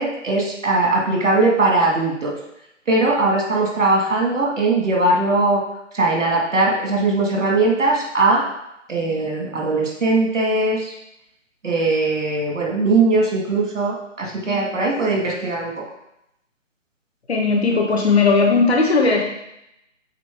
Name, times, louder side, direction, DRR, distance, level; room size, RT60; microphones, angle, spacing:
voice 1, 0.0-2.3 2.9-5.6 5.9-8.4 8.9-10.9 11.6-15.7, right 2 dB, 70° right, -1 dB, 2.3 m, -20 dB
voice 2, 17.3-19.2, left 4 dB, 55° left, 0 dB, 1.6 m, -17 dB
8.2 x 3.8 x 3.7 m, 0.82 s
figure-of-eight pair, 155°, 38 cm